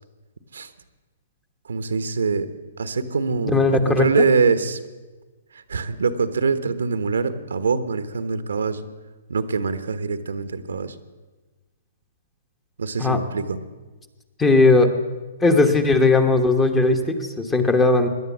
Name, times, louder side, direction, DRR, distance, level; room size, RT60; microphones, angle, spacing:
voice 1, 1.7-2.5 2.8-4.8 5.5-8.9 9.3-10.9 12.8-13.6, right 5 dB, 90° right, 11 dB, 1.2 m, -24 dB
voice 2, 3.5-4.1 13.0-13.2 14.4-14.9 15.4-18.1, left 3 dB, 10° left, 7 dB, 1.3 m, -17 dB
17.5 x 11.0 x 7.4 m, 1.3 s
hypercardioid pair, 145°, 0 cm